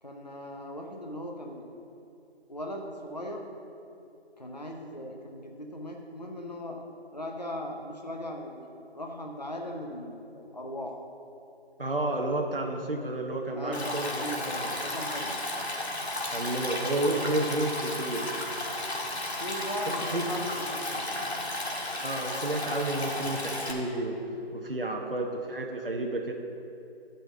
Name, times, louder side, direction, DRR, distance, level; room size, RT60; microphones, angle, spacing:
voice 1, 0.0-1.7 2.5-3.5 4.4-6.9 7.1-8.7 8.9-11.0 13.5-15.4 19.4-21.0, equal, 40° left, 1 dB, 0.7 m, -38 dB
voice 2, 11.8-14.8 16.3-18.3 20.1-20.2 22.0-24.2 24.5-26.3, right 1 dB, 55° right, 1 dB, 0.8 m, -31 dB
Stream, 13.7-23.7, left 1 dB, 80° left, 1.8 m, -33 dB
8.9 x 5.2 x 7.3 m, 2.8 s
figure-of-eight pair, 175°, 32 cm